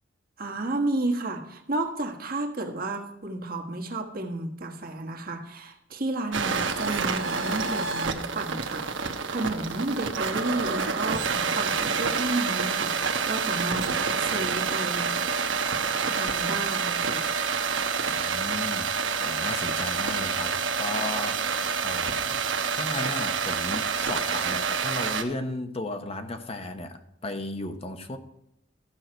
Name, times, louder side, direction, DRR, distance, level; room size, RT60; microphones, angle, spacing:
voice 1, 0.4-15.4 16.1-17.3, right 2 dB, 50° right, 1.4 m, -32 dB
sound 1, 6.3-25.2, right 5 dB, 90° right, 1.1 m, -28 dB
voice 2, 18.1-21.5 21.8-28.2, left 2 dB, 30° left, 0.9 m, -35 dB
14.0 x 6.4 x 4.4 m
head